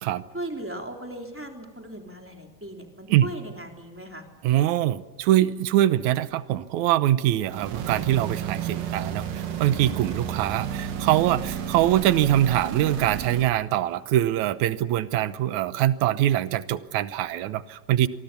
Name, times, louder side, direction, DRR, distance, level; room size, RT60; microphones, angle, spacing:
voice 1, 0.3-4.2, right 1 dB, 5° right, 3 dB, 3.3 m, -37 dB
voice 2, 4.4-18.1, right 13 dB, 70° right, 14 dB, 2.2 m, -23 dB
sound 1, 7.5-13.6, right 8 dB, 90° right, 3.4 m, -32 dB
27.5 x 24.0 x 7.0 m, 1.3 s
omnidirectional pair, 3.8 m